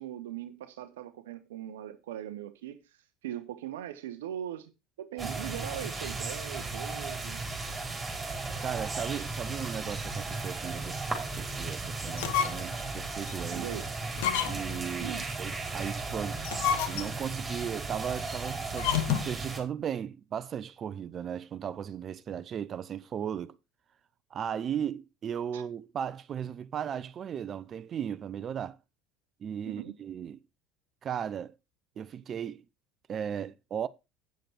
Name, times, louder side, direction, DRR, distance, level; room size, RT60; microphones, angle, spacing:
voice 1, 0.0-4.7 5.0-7.4 13.5-13.9 15.0-15.3 25.5-25.6 29.6-30.0, right 11 dB, 75° right, 0.8 m, -40 dB
sound 1, 5.2-19.6, right 3 dB, 20° right, 4.3 m, -36 dB
voice 2, 8.6-13.7 14.5-16.4 16.9-23.6 24.3-28.8 29.4-30.4 31.0-31.5 32.0-32.6 33.1-33.9, right 8 dB, 40° right, 0.7 m, -36 dB
sound 2, 12.1-12.8 13.3-13.4 14.1-14.8 16.3-17.3 18.7-19.4, left 9 dB, 70° left, 1.2 m, -30 dB
9.2 x 7.7 x 4.5 m
hypercardioid pair, 70°, 0 cm